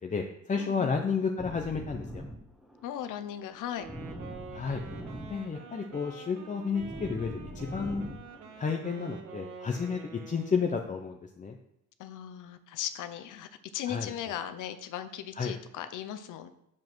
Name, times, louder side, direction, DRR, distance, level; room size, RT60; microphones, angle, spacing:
voice 1, 0.0-2.2 4.5-4.8 5.2-8.0 8.6-11.6 13.9-14.1 15.4-15.5, left 5 dB, 25° left, 3 dB, 0.8 m, -32 dB
voice 2, 0.6-0.9 2.8-3.9 12.0-16.5, left 10 dB, 85° left, 10 dB, 0.9 m, -37 dB
sound 1, 1.4-9.4, equal, ahead, 1.3 m, -44 dB
Wind instrument woodwind instrument, 3.7-10.9, right 5 dB, 80° right, 1.8 m, -47 dB
7.5 x 7.4 x 6.1 m, 0.78 s
cardioid pair, 135°, 30 cm